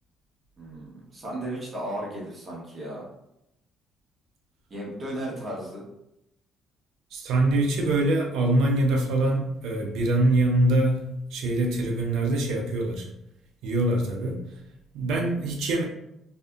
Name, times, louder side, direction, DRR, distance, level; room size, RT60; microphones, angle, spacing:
voice 1, 0.6-3.1 4.7-5.8, right 1 dB, 35° right, -4 dB, 1.0 m, -35 dB
voice 2, 7.1-13.1 13.6-14.4 14.9-15.8, right 1 dB, 80° right, 1 dB, 0.5 m, -24 dB
2.7 x 2.5 x 2.3 m, 0.82 s
cardioid pair, 125°, 0 cm